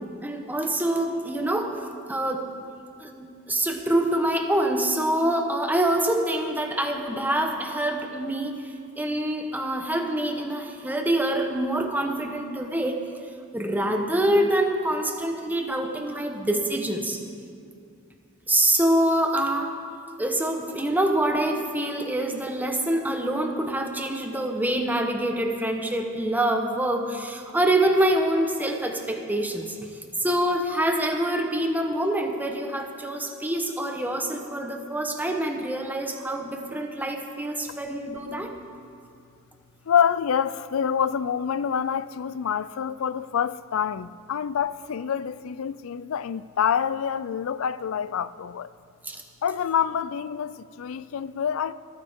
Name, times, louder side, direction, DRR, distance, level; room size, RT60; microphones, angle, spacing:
voice 1, 0.2-2.5 3.0-13.0 13.5-17.2 18.5-19.8 20.2-29.8 30.2-38.5 49.0-49.2, right 1 dB, 10° right, 1.0 m, -25 dB
voice 2, 39.9-48.7 49.4-51.7, left 8 dB, 85° left, 0.4 m, -26 dB
27.0 x 9.7 x 3.6 m
head